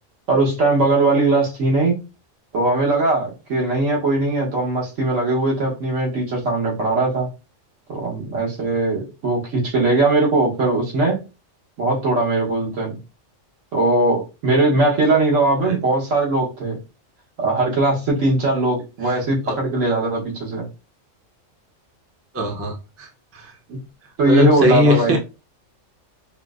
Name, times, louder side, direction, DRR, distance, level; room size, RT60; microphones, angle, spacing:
voice 1, 0.3-2.0 2.5-7.3 7.9-11.2 11.8-13.0 13.7-16.8 17.4-20.6 23.7-23.8 24.2-25.2, right 2 dB, 80° right, 1.4 m, -20 dB
voice 2, 22.3-23.5 24.2-25.2, left 1 dB, 15° right, 0.5 m, -20 dB
4.4 x 2.0 x 2.4 m
omnidirectional pair, 1.3 m